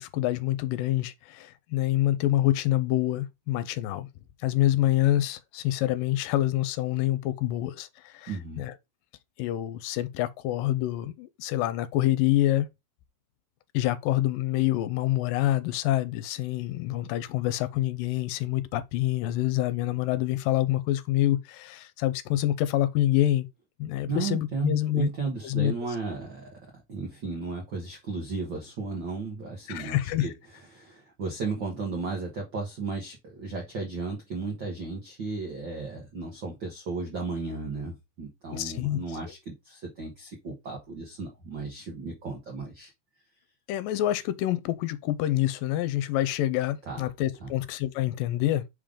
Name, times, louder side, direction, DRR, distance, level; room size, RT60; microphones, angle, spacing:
voice 1, 0.0-4.1 4.4-8.3 8.6-8.7 9.4-12.7 13.7-23.5 23.8-25.1 25.4-25.7 29.7-30.3 38.5-39.0 43.7-48.6, left 14 dB, 85° left, 2.3 m, -26 dB
voice 2, 8.3-8.6 24.1-26.6 26.9-30.3 30.7-42.9 46.9-47.0 47.4-47.5, right 4 dB, 80° right, 1.0 m, -34 dB
5.5 x 5.1 x 3.7 m
omnidirectional pair, 4.0 m